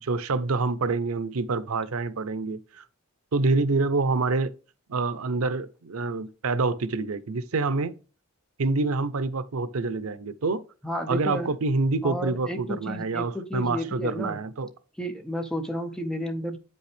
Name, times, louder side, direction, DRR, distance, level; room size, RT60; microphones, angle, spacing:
voice 1, 0.0-2.8 3.3-4.5 4.9-8.0 8.6-10.6 11.1-14.7, right 3 dB, 80° right, 0.6 m, -27 dB
voice 2, 10.8-11.5 12.0-14.4 15.0-16.6, equal, 5° left, 0.8 m, -32 dB
8.5 x 5.4 x 3.3 m
head